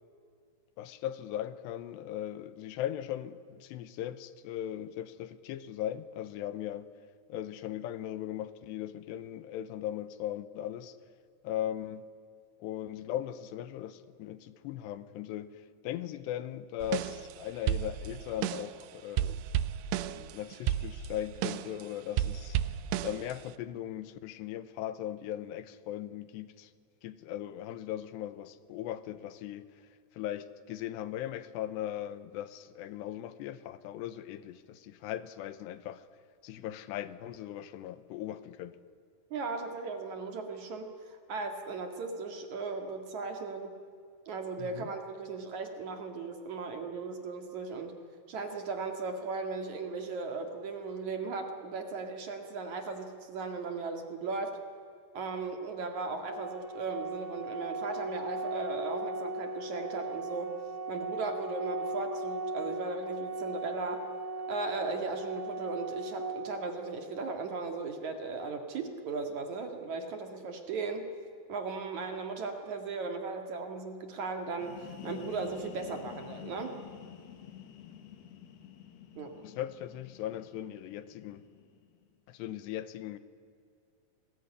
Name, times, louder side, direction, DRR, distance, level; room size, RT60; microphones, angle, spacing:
voice 1, 0.8-6.9 7.3-11.0 11.4-12.1 12.6-19.4 20.0-22.6 23.0-26.7 27.0-29.7 30.1-36.1 36.4-38.8 44.6-44.9 79.4-81.4 82.3-83.2, left 12 dB, 85° left, 14 dB, 3.1 m, -38 dB
sound 1, 16.8-17.4 17.7-18.8 19.2-21.8 22.2-23.5, right 11 dB, 85° right, 3.0 m, -33 dB
voice 2, 39.3-43.7 44.3-47.9 48.3-54.6 55.1-60.5 60.9-64.0 64.5-71.1 71.5-74.7 75.0-76.7 79.2-79.3, right 4 dB, 50° right, 5 dB, 2.9 m, -37 dB
Organ, 56.3-67.3, right 2 dB, 30° right, 0.4 m, -38 dB
sound 2, 74.5-82.1, left 10 dB, 70° left, 3.7 m, -49 dB
29.5 x 20.5 x 9.9 m, 2.3 s
omnidirectional pair, 4.9 m